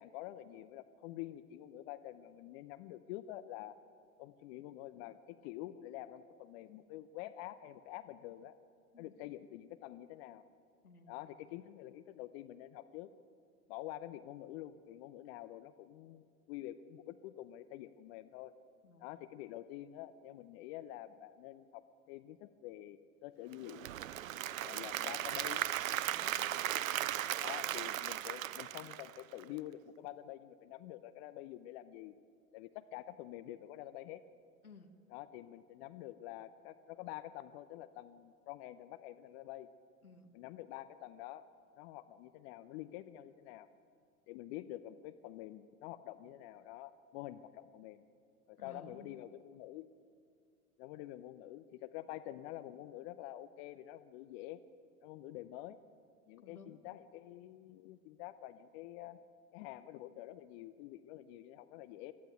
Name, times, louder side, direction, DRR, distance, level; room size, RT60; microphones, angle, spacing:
voice 1, 0.0-3.8 4.2-8.5 9.0-10.4 11.1-13.1 13.7-18.5 19.0-23.9 24.5-25.7 27.4-32.2 32.5-34.2 35.1-39.7 40.3-41.5 41.8-43.7 44.3-48.0 48.5-49.9 50.8-54.6 55.0-55.8 56.3-59.2 59.5-62.1, left 14 dB, 45° left, 14 dB, 0.8 m, -48 dB
voice 2, 10.8-11.3 18.8-19.1 24.7-24.9 26.0-26.6 34.6-35.0 40.0-40.4 48.6-49.2 56.4-56.8, left 3 dB, 85° left, 6 dB, 1.6 m, -57 dB
Applause / Crowd, 23.5-29.6, right 12 dB, 65° right, 0.7 m, -37 dB
22.5 x 14.5 x 9.2 m, 2.2 s
figure-of-eight pair, 80°, 43 cm